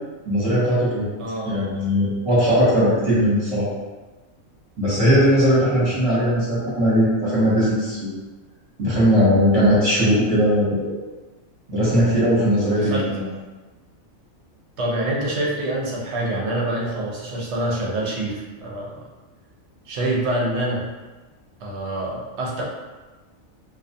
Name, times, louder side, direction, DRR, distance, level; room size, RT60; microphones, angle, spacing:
voice 1, 0.2-1.1 1.4-3.7 4.8-8.2 8.8-10.9 11.7-13.2, equal, 30° right, -9 dB, 0.8 m, -19 dB
voice 2, 1.2-1.5 5.6-6.0 12.7-13.1 14.8-19.0 19.9-20.8 21.6-22.6, right 1 dB, 65° right, -3 dB, 0.8 m, -26 dB
2.3 x 2.3 x 2.6 m, 1.2 s
omnidirectional pair, 1.4 m